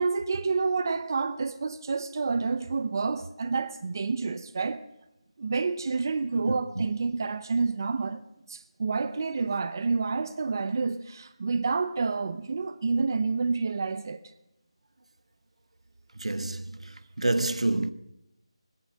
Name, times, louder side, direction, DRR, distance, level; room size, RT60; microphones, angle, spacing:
voice 1, 0.0-4.8 5.4-8.2 8.5-14.2, right 4 dB, 35° right, 0.7 m, -29 dB
voice 2, 16.2-16.6 17.2-17.9, right 2 dB, 85° right, 1.2 m, -26 dB
19.0 x 10.5 x 6.6 m
figure-of-eight pair, 170°, 3 cm